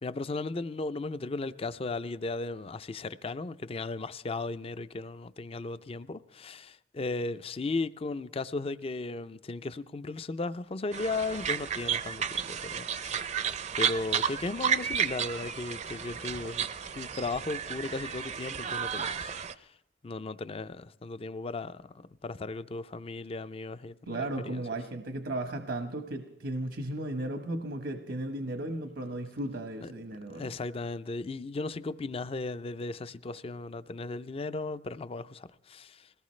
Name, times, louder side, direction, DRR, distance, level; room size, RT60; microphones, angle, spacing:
voice 1, 0.0-13.3 13.8-19.3 19.6-19.7 20.0-21.9 22.2-24.6 29.8-29.9 30.3-36.1, left 3 dB, 35° left, 0.5 m, -36 dB
sound 1, 10.9-19.5, right 7 dB, 40° right, 0.5 m, -32 dB
voice 2, 24.1-30.5, right 1 dB, 80° right, 1.1 m, -35 dB
21.0 x 18.0 x 3.2 m
head